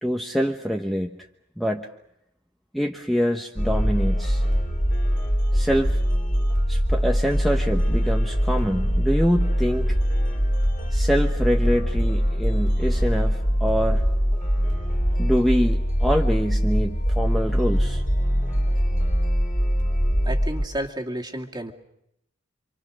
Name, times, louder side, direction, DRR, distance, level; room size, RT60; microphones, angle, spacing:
voice 1, 0.0-1.1 1.6-1.9 2.7-4.4 5.5-6.0 6.7-9.9 10.9-14.0 15.2-18.0, equal, ahead, 2 dB, 1.1 m, -25 dB
sound 1, 3.6-20.6, equal, 40° left, 3.6 m, -22 dB
voice 2, 20.3-21.7, right 1 dB, 20° right, 2 dB, 2.3 m, -31 dB
28.5 x 26.0 x 6.5 m, 0.80 s
head